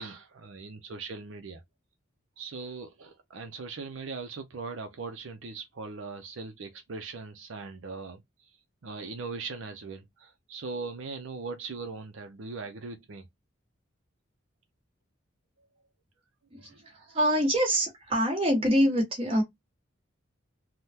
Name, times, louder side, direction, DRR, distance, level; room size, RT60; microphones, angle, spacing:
voice 1, 0.0-1.6 2.4-8.5 8.8-13.2 16.5-17.2, right 4 dB, 75° right, 0.5 m, -40 dB
voice 2, 16.5-19.4, equal, 25° right, 1.3 m, -25 dB
3.5 x 2.2 x 2.7 m
head